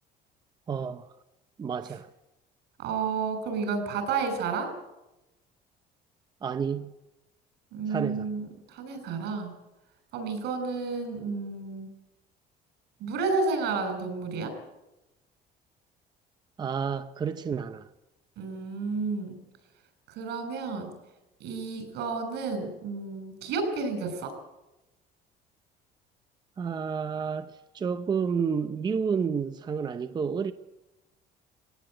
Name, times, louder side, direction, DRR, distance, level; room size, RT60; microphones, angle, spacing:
voice 1, 0.7-1.2 1.6-2.1 6.4-6.9 7.9-8.3 16.6-17.9 26.6-30.5, right 6 dB, 25° right, 0.7 m, -30 dB
voice 2, 2.8-4.7 7.7-9.5 10.1-11.9 13.0-14.5 18.4-19.4 20.1-20.9 21.4-24.3, right 4 dB, 75° right, 6.5 m, -31 dB
19.0 x 18.0 x 8.9 m
cardioid pair, 160°, 17 cm